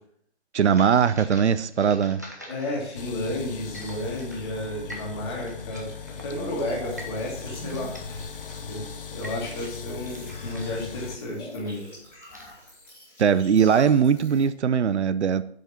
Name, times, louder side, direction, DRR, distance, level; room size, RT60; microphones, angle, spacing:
voice 1, 0.5-2.2 13.2-15.4, right 7 dB, 85° right, 14 dB, 0.6 m, -20 dB
sound 1, 0.6-12.9, left 1 dB, 15° right, 0.5 m, -46 dB
voice 2, 2.5-8.2 8.6-8.8 9.1-11.8, left 1 dB, 25° left, -3 dB, 1.9 m, -32 dB
sound 2, 2.9-11.2, left 5 dB, 55° left, 0.6 m, -38 dB
sound 3, 6.6-14.4, equal, 5° left, 2.5 m, -44 dB
6.6 x 5.1 x 5.8 m, 0.68 s
figure-of-eight pair, 160°, 33 cm